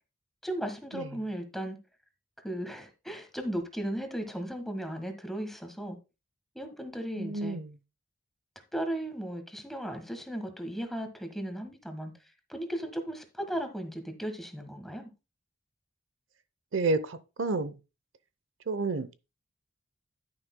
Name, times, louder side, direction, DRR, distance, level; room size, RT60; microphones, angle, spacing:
voice 1, 0.4-1.8 2.4-6.0 6.5-7.6 8.7-12.1 12.5-15.1, right 1 dB, ahead, 1.4 m, -36 dB
voice 2, 7.2-7.8 16.7-17.8 18.7-19.1, right 3 dB, 80° right, 0.7 m, -30 dB
11.0 x 9.8 x 2.2 m
head